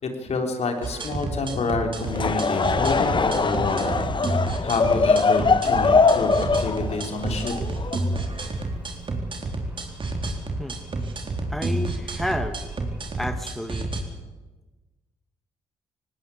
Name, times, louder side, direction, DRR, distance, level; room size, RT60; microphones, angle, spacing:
voice 1, 0.0-6.3 6.6-7.5, left 3 dB, 55° left, 4 dB, 3.7 m, -28 dB
sound 1, 0.8-14.0, right 2 dB, 40° right, 3.9 m, -30 dB
Laughter / Crowd, 2.0-8.4, left 4 dB, 40° left, 1.5 m, -22 dB
sound 2, 2.7-13.2, right 2 dB, 15° right, 8.0 m, -42 dB
voice 2, 11.5-12.6 13.2-13.9, equal, ahead, 8 dB, 1.9 m, -30 dB
19.0 x 18.0 x 8.6 m, 1.2 s
hypercardioid pair, 50°, 13 cm